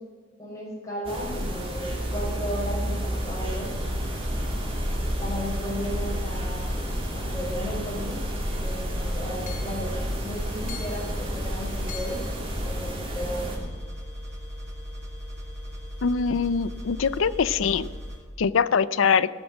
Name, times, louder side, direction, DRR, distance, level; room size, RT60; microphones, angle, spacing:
voice 1, 0.4-3.7 5.2-8.2 8.5-12.2 12.6-13.7, equal, 15° left, -4 dB, 4.3 m, -35 dB
sound 1, 1.0-13.6, equal, 30° right, 2.6 m, -31 dB
sound 2, 3.4-18.2, equal, 60° right, 3.3 m, -38 dB
Hammer / Chink clink, 8.5-8.6 9.5-9.8 10.7-11.2 11.9-12.4, left 8 dB, 40° left, 2.0 m, -42 dB
voice 2, 16.0-17.9 18.4-19.3, left 6 dB, 90° left, 16 dB, 0.5 m, -23 dB
16.5 x 7.2 x 6.2 m, 1.5 s
head